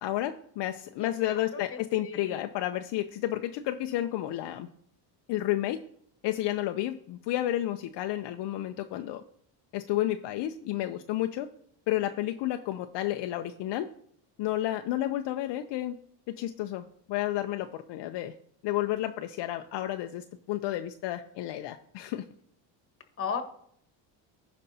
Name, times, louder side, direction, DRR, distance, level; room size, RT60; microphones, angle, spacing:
voice 1, 0.0-4.7 5.3-5.8 6.2-9.2 9.7-11.5 11.9-13.9 14.4-16.0 16.3-18.3 18.6-22.2, left 14 dB, 65° left, 7 dB, 0.6 m, -31 dB
voice 2, 1.0-2.4 23.2-23.4, left 6 dB, 30° left, 6 dB, 1.3 m, -36 dB
15.0 x 5.2 x 2.8 m, 0.66 s
cardioid pair, 115°, 46 cm